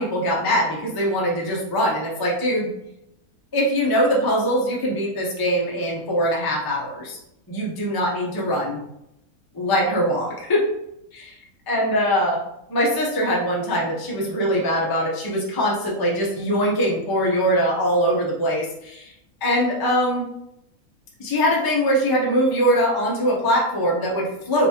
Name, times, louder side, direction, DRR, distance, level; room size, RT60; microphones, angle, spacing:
voice 1, 0.0-2.7 3.5-7.2 7.5-8.8 9.5-10.6 11.1-11.3 11.7-12.4 12.7-19.1 19.4-20.3 21.2-24.7, equal, 20° left, -2 dB, 0.6 m, -22 dB
4.0 x 3.3 x 2.8 m, 0.81 s
omnidirectional pair, 1.5 m